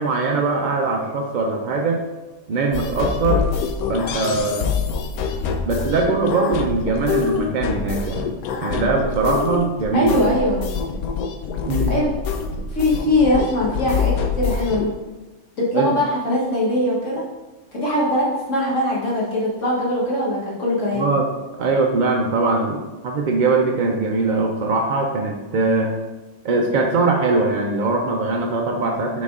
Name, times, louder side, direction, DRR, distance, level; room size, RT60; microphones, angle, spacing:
voice 1, 0.0-2.0 2.5-3.5 3.9-4.7 5.6-8.3 8.6-10.1 11.7-11.9 15.7-16.0 20.9-21.3 21.6-26.0 26.4-29.2, right 3 dB, 65° right, 1 dB, 0.4 m, -21 dB
sound 1, 2.7-14.9, left 6 dB, 80° left, 1.1 m, -25 dB
voice 2, 9.9-10.7 11.9-12.1 12.7-14.9 15.6-17.2 17.7-21.1, left 1 dB, 60° left, -5 dB, 1.5 m, -21 dB
6.3 x 4.2 x 3.6 m, 1.1 s
omnidirectional pair, 1.5 m